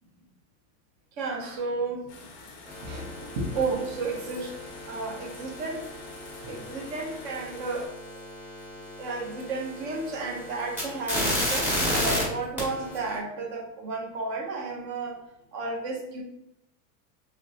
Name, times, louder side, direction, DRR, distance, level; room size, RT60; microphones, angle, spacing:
voice 1, 1.2-4.6 4.9-5.9 6.4-7.9 9.0-15.2 15.5-16.2, right 3 dB, 30° right, 2 dB, 0.5 m, -33 dB
sound 1, 2.1-7.9, left 3 dB, 30° left, 0.4 m, -48 dB
sound 2, 2.7-12.2 12.6-13.2, equal, 5° right, 0.8 m, -33 dB
3.1 x 2.9 x 2.5 m, 0.81 s
supercardioid pair, 170°, 40 cm